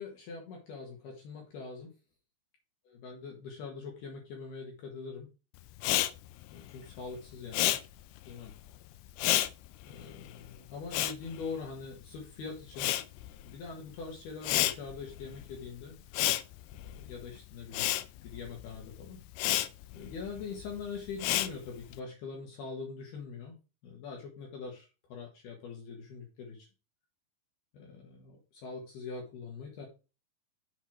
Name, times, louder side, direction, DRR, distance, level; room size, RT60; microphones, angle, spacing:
voice 1, 0.0-1.9 2.9-5.3 6.5-7.8 8.3-8.5 9.8-12.9 13.4-15.9 16.8-17.9 18.2-19.2 19.9-23.6 23.8-26.7 27.7-29.9, left 5 dB, 65° left, 0 dB, 3.2 m, -43 dB
Respiratory sounds, 5.8-12.2 12.5-22.0, left 14 dB, 85° left, 2.4 m, -32 dB
7.5 x 5.5 x 4.4 m, 0.31 s
omnidirectional pair, 5.5 m